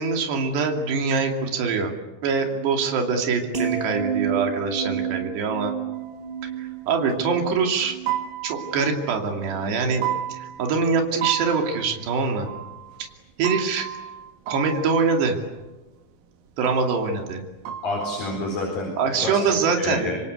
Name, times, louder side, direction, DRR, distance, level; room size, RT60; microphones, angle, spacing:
voice 1, 0.0-1.9 2.2-5.7 6.4-8.0 8.4-12.5 13.4-13.9 14.5-15.4 16.6-17.5 19.0-20.1, right 5 dB, 80° right, 3 dB, 4.8 m, -24 dB
sound 1, 3.5-9.8 10.2-10.5, right 8 dB, 20° right, 1.6 m, -31 dB
sound 2, 5.9-7.2 7.5-7.6 8.0-9.6 10.0-11.0 11.2-15.7 16.0-16.3 16.5-18.9, right 11 dB, 65° right, 3.3 m, -34 dB
voice 2, 17.8-19.4 19.8-20.2, left 2 dB, 55° left, 0 dB, 6.1 m, -29 dB
27.0 x 25.5 x 8.2 m, 1.1 s
omnidirectional pair, 4.8 m